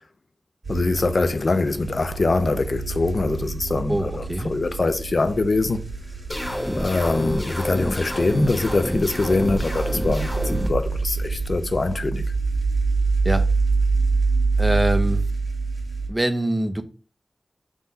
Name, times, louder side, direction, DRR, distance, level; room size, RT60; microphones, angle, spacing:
sound 1, 0.6-16.1, right 4 dB, 70° right, 1.4 m, -26 dB
voice 1, 0.7-5.8 6.7-12.2, left 3 dB, 65° left, 0.4 m, -23 dB
voice 2, 3.9-4.5 13.2-13.5 14.6-15.3 16.1-16.8, right 1 dB, 20° right, 0.6 m, -24 dB
sound 2, 6.3-10.7, equal, 15° left, 1.0 m, -28 dB
3.7 x 2.7 x 4.3 m
wide cardioid pair, 50°, 0 cm